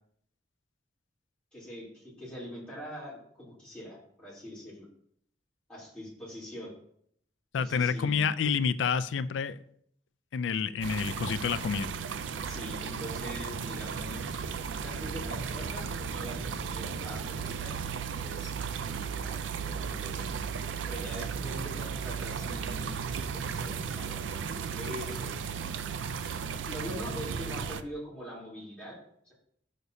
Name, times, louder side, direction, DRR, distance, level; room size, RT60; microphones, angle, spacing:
voice 1, 1.5-4.8 5.7-6.7 7.6-8.3 12.4-14.3 14.7-17.8 18.1-18.5 18.9-20.4 20.9-25.4 26.7-29.0 29.2-29.3, equal, 5° left, -9 dB, 3.1 m, -43 dB
voice 2, 7.5-9.6 10.3-11.9, left 6 dB, 90° left, 14 dB, 0.4 m, -29 dB
sound 1, 10.8-27.8, right 6 dB, 85° right, 0.4 m, -35 dB
9.4 x 6.5 x 2.7 m, 0.67 s
head